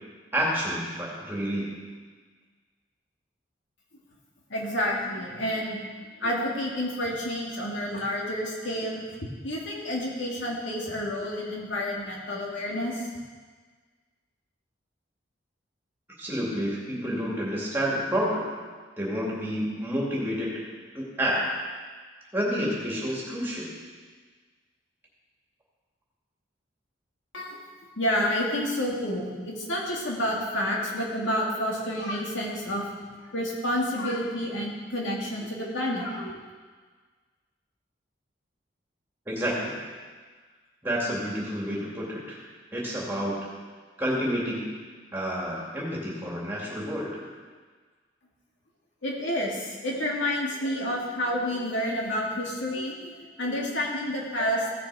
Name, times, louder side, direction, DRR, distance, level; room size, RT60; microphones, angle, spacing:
voice 1, 0.3-1.8 16.2-18.5 19.0-20.6 20.9-21.5 22.3-23.7 39.3-39.7 40.8-42.4 42.7-43.4 44.0-44.6 45.1-47.2, equal, 10° right, -5 dB, 2.5 m, -29 dB
voice 2, 4.5-5.8 6.2-9.0 9.4-13.1 27.3-27.6 28.0-32.8 33.3-36.3 49.0-53.1 53.4-54.8, equal, 85° left, -3 dB, 2.2 m, -29 dB
15.5 x 6.5 x 4.8 m, 1.5 s
head